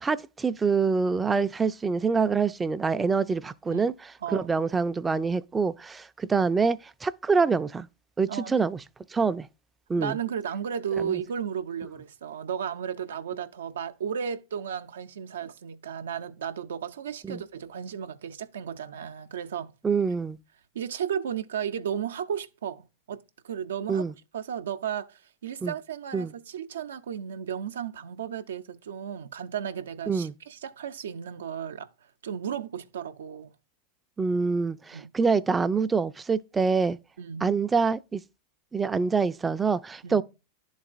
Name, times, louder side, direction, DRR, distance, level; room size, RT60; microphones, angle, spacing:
voice 1, 0.0-7.9 8.2-8.8 9.1-9.5 9.9-10.2 11.0-11.2 17.2-17.4 19.8-20.4 23.9-24.1 25.6-25.7 26.1-26.3 30.1-30.3 34.2-37.0 37.4-38.2 38.7-40.2, right 5 dB, 15° right, 0.4 m, -26 dB
voice 2, 4.2-4.5 8.3-8.5 10.0-19.7 20.7-24.1 24.3-31.9 32.2-33.5 34.9-35.1 37.2-37.6 40.0-40.2, right 8 dB, 80° right, 0.5 m, -34 dB
11.0 x 4.0 x 2.4 m
hypercardioid pair, 100°, 0 cm